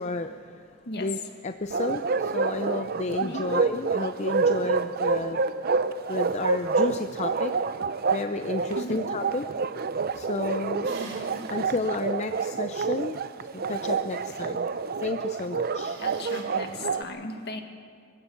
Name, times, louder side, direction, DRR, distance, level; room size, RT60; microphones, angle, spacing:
voice 1, 0.0-0.7 1.0-5.4 5.7-5.8 6.1-7.5 8.1-9.4 10.1-11.0 11.5-13.2 13.5-14.7 15.0-16.0, left 3 dB, 35° left, 8 dB, 0.5 m, -32 dB
Bark, 1.7-17.0, right 4 dB, 50° right, 0.6 m, -28 dB
voice 2, 3.2-3.5 8.7-9.0 16.0-17.6, left 2 dB, 55° left, 5 dB, 1.8 m, -36 dB
sound 1, 10.8-11.5 12.0-12.1 15.8-16.4, right 2 dB, 70° right, 4.5 m, -41 dB
24.0 x 16.0 x 7.1 m, 2.3 s
head